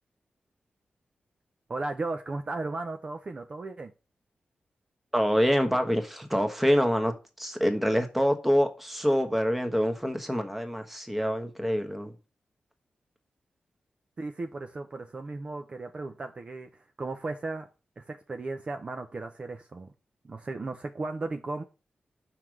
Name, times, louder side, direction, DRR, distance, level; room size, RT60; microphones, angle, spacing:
voice 1, 1.7-3.9 14.2-16.7 17.0-17.7 18.0-19.9 20.2-21.6, right 3 dB, 35° right, 0.6 m, -35 dB
voice 2, 5.1-12.1, equal, 5° right, 1.2 m, -26 dB
5.8 x 4.7 x 6.3 m
wide cardioid pair, 135°, 3 cm